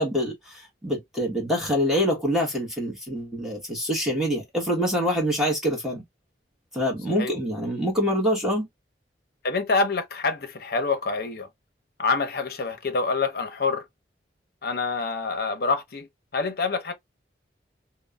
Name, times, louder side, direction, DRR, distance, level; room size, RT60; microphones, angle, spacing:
voice 1, 0.0-6.0 6.7-8.7, equal, ahead, 1.0 m, -25 dB
voice 2, 9.4-11.5 12.0-13.8 14.6-16.1 16.3-16.9, left 4 dB, 55° left, 0.6 m, -26 dB
3.0 x 2.0 x 2.2 m
head